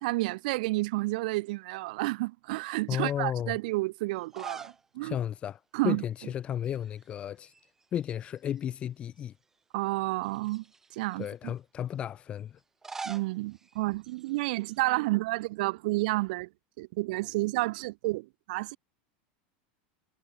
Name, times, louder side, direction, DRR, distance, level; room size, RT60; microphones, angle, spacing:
voice 1, 0.0-5.2 5.7-6.0 9.7-10.6 11.0-11.5 13.0-16.5 16.8-18.8, right 21 dB, 55° right, 0.7 m, -30 dB
voice 2, 2.9-3.6 5.0-7.5 7.9-9.3 11.2-12.6, left 10 dB, 20° left, 2.0 m, -33 dB
sound 1, 4.2-4.9 5.2-5.3 6.6-7.1 7.4-8.6 9.2-9.3 10.2-11.3 12.6-14.8, right 4 dB, 10° right, 1.0 m, -45 dB
supercardioid pair, 180°, 6 cm